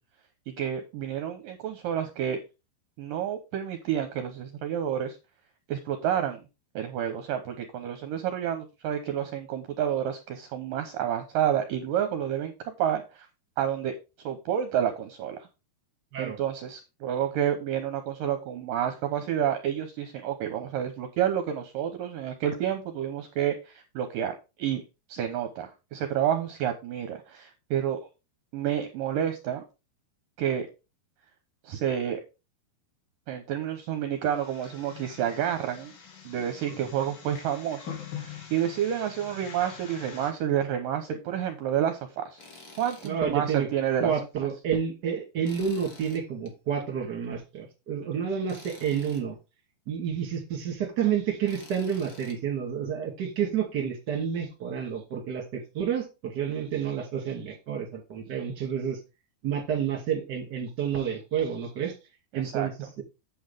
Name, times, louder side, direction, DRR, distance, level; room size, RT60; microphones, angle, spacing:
voice 1, 0.5-2.4 3.0-5.2 5.7-6.4 6.8-12.5 12.8-13.3 13.6-13.9 14.2-15.5 16.2-28.0 28.5-29.7 30.4-30.7 31.6-32.2 33.3-35.9 36.3-42.4 42.8-44.1 62.3-62.7, right 10 dB, 70° right, 7 dB, 2.3 m, -29 dB
sound 1, 34.2-40.3, left 8 dB, 60° left, 3.8 m, -44 dB
Tools, 42.4-43.1 43.6-43.7 45.4-46.5 48.5-49.2 51.4-52.4, left 3 dB, 40° left, 1.3 m, -48 dB
voice 2, 43.0-43.7 44.0-49.4 49.9-59.0 59.4-62.0 62.3-63.0, right 8 dB, 30° right, 3 dB, 2.3 m, -30 dB
8.6 x 8.0 x 3.5 m, 0.28 s
omnidirectional pair, 4.7 m